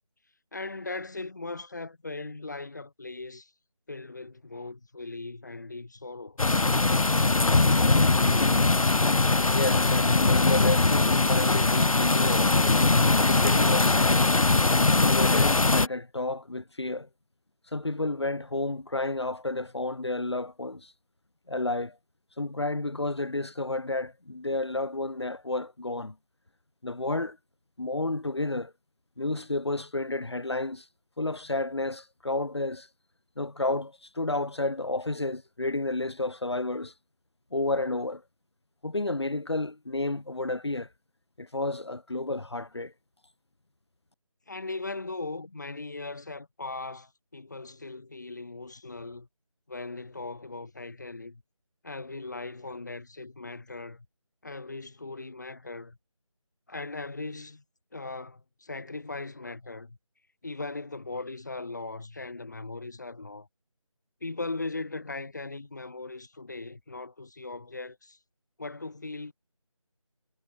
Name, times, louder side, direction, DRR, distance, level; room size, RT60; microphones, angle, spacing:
voice 1, 0.5-3.5 3.9-6.4 44.5-49.3 49.7-51.4 51.8-54.1 54.4-56.0 56.7-57.6 57.9-60.0 60.4-63.5 64.2-68.2 68.6-69.3, left 3 dB, 30° left, 7.4 m, -39 dB
sound 1, 6.4-15.9, left 3 dB, 75° left, 1.2 m, -21 dB
voice 2, 9.5-12.6 13.2-14.3 14.8-17.1 17.7-20.9 21.5-22.0 22.4-26.1 26.8-27.4 27.8-28.7 29.2-30.9 31.2-32.9 33.4-36.9 37.5-38.2 38.8-40.9 41.4-42.9, left 2 dB, 50° left, 6.4 m, -31 dB
figure-of-eight pair, 180°, 18 cm